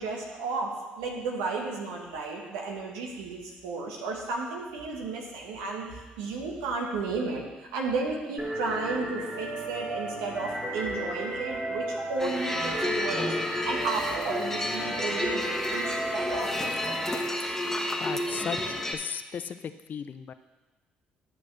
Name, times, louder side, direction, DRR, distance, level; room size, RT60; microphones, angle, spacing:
voice 1, 0.0-17.0, right 3 dB, 85° right, 0 dB, 1.3 m, -33 dB
sound 1, 8.4-17.1, right 1 dB, 30° right, 1.8 m, -34 dB
sound 2, 12.2-18.9, left 1 dB, 10° left, 1.2 m, -31 dB
voice 2, 18.0-20.3, left 7 dB, 50° left, 12 dB, 0.5 m, -36 dB
10.5 x 6.2 x 3.3 m, 1.2 s
hypercardioid pair, 55°, 4 cm